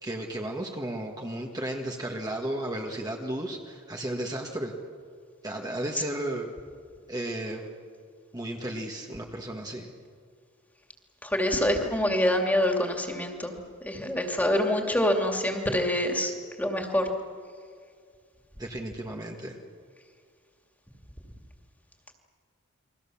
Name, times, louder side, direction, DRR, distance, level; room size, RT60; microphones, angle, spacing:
voice 1, 0.0-4.7 5.4-6.5 7.1-7.7 8.3-9.9 18.6-19.6, right 1 dB, 20° right, 1 dB, 1.7 m, -34 dB
voice 2, 11.2-13.5 13.8-17.1, left 1 dB, 10° left, 2 dB, 2.7 m, -26 dB
30.0 x 23.0 x 7.2 m, 2.1 s
head